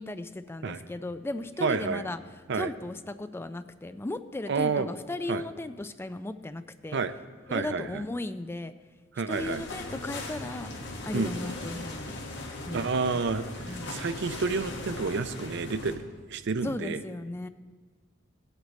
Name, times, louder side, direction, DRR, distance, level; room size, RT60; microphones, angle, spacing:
voice 1, 0.0-2.2 2.5-7.0 7.5-8.7 9.3-10.7 11.0-12.2 12.7-13.2 13.6-13.9 16.6-17.5, left 2 dB, 10° left, 11 dB, 0.3 m, -36 dB
voice 2, 1.6-2.0 2.5-2.7 4.5-4.9 5.3-5.4 6.9-7.1 7.5-8.0 9.2-9.6 11.1-11.3 12.7-16.0 16.3-17.0, right 4 dB, 60° right, 12 dB, 0.5 m, -29 dB
sound 1, 9.3-16.0, left 2 dB, 60° left, 1.6 m, -39 dB
16.5 x 8.1 x 4.1 m, 1.4 s
head